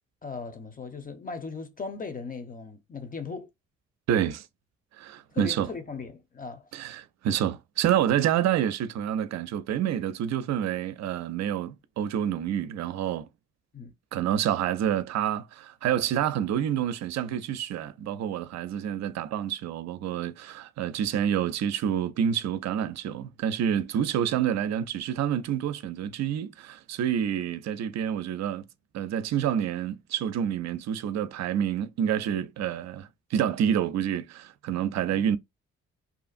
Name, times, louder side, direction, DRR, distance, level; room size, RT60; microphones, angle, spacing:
voice 1, 0.2-3.5 5.3-6.7 13.7-13.9, left 4 dB, 25° left, 0.9 m, -38 dB
voice 2, 4.1-4.5 5.0-5.7 6.7-13.3 14.1-28.6 28.9-35.4, right 9 dB, 55° right, 0.5 m, -28 dB
2.8 x 2.4 x 2.4 m
hypercardioid pair, 45°, 32 cm